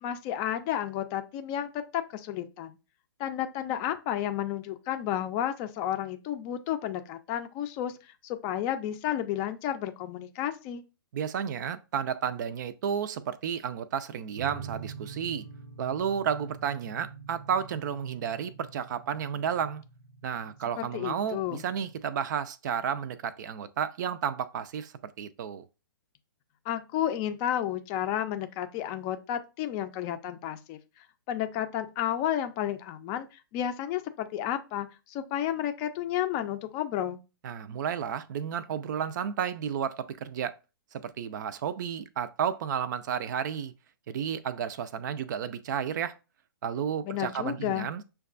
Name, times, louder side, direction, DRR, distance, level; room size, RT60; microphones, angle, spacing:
voice 1, 0.0-2.8 3.2-10.8 20.8-21.6 26.7-37.2 47.0-47.9, left 11 dB, 30° left, 0.4 m, -32 dB
voice 2, 11.1-15.4 15.8-19.8 20.2-24.9 25.2-25.7 37.4-40.5 41.0-43.7 44.1-46.1 46.6-48.0, right 8 dB, 50° right, 0.4 m, -32 dB
sound 1, 14.4-22.0, right 5 dB, 85° right, 0.9 m, -45 dB
6.3 x 2.3 x 2.5 m
hypercardioid pair, 130°, 12 cm